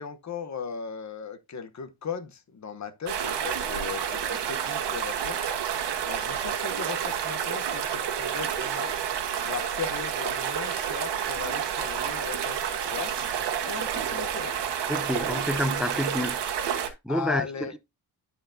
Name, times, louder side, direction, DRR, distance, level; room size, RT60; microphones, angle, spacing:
voice 1, 0.0-8.9 9.3-14.5 17.1-17.7, left 6 dB, 40° left, 1.0 m, -37 dB
sound 1, 3.1-16.9, right 8 dB, 80° right, 1.4 m, -29 dB
voice 2, 14.9-16.4 16.7-17.8, left 1 dB, ahead, 0.6 m, -29 dB
12.5 x 4.7 x 2.7 m
cardioid pair, 105°, 41 cm